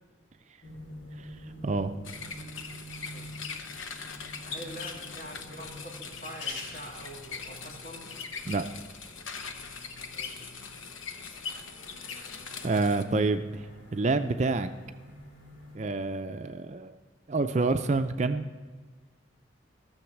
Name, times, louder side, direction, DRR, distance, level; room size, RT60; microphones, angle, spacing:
sound 1, 0.6-15.8, equal, 70° left, 2.3 m, -48 dB
voice 1, 1.2-2.0 8.5-8.6 12.6-14.7 15.7-16.9 17.3-18.5, right 3 dB, 35° right, 9 dB, 0.4 m, -28 dB
sound 2, 2.0-13.0, left 5 dB, 85° left, 0.9 m, -41 dB
voice 2, 4.4-8.1 10.1-10.6, right 1 dB, 45° left, -1 dB, 2.3 m, -45 dB
13.5 x 7.1 x 6.0 m, 1.4 s
head